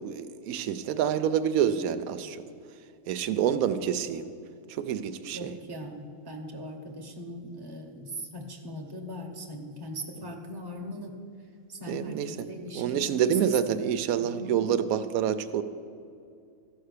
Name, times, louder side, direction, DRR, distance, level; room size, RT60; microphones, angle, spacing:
voice 1, 0.0-2.4 3.1-4.3 4.7-5.5 11.9-12.5 12.7-15.6, right 9 dB, 85° right, 11 dB, 1.0 m, -27 dB
voice 2, 3.3-3.8 5.3-11.1 11.7-13.3 14.3-14.7, equal, 20° right, 2 dB, 0.9 m, -40 dB
14.0 x 5.7 x 6.6 m, 2.4 s
omnidirectional pair, 1.5 m